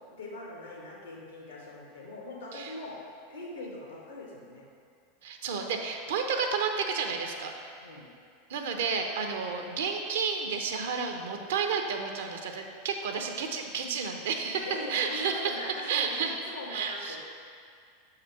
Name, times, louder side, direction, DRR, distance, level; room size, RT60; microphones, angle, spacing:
voice 1, 0.1-3.0 3.3-4.6 7.8-8.1 14.6-17.2, left 2 dB, 85° left, -3 dB, 1.5 m, -41 dB
voice 2, 5.2-7.5 8.5-17.2, right 5 dB, 70° right, 4 dB, 0.7 m, -31 dB
6.3 x 4.9 x 4.7 m, 2.3 s
hypercardioid pair, 85°, 0 cm